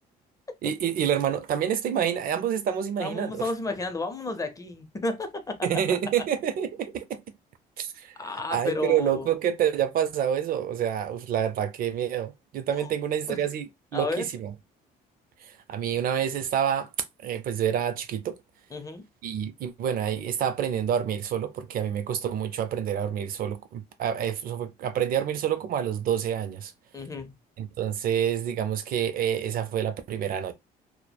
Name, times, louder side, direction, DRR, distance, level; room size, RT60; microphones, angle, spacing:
voice 1, 0.6-3.5 5.6-7.2 7.8-8.1 8.5-14.5 15.4-16.9 17.2-18.4 19.2-26.7 27.6-30.5, right 9 dB, 60° right, 0.5 m, -28 dB
voice 2, 3.0-5.6 8.2-9.3 12.8-12.9 13.3-13.5 13.9-14.2 18.7-19.1 26.9-27.3, left 2 dB, 20° left, 0.5 m, -32 dB
3.0 x 2.1 x 2.2 m
cardioid pair, 110°, 17 cm